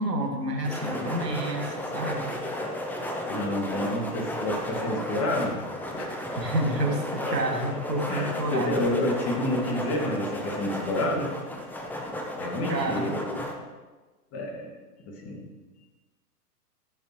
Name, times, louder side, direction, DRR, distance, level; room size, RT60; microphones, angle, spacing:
voice 1, 0.0-2.4 6.4-8.9 12.7-13.1, right 1 dB, 80° right, 1 dB, 1.9 m, -29 dB
sound 1, 0.6-13.5, left 1 dB, 5° left, 0.8 m, -33 dB
voice 2, 3.3-5.6 5.9-6.1 7.3-7.4 8.1-11.3 12.4-13.4 14.3-14.7 15.1-15.4, left 1 dB, 30° left, -1 dB, 2.3 m, -29 dB
14.5 x 7.0 x 3.2 m, 1.2 s
figure-of-eight pair, 105°, 48 cm